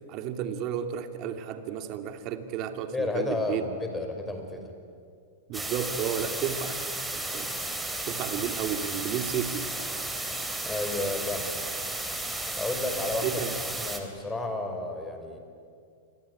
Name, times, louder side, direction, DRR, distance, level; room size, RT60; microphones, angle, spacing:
voice 1, 0.1-3.6 5.5-6.9 7.1-7.5 8.1-9.7 13.2-13.5, right 9 dB, 45° right, 8 dB, 2.5 m, -32 dB
voice 2, 2.9-4.6 10.6-11.5 12.6-13.4 13.7-15.4, left 2 dB, 10° left, 5 dB, 5.3 m, -31 dB
sound 1, 5.5-14.0, right 2 dB, 5° right, 3.6 m, -33 dB
27.5 x 22.5 x 9.8 m, 2.2 s
hypercardioid pair, 105°, 0 cm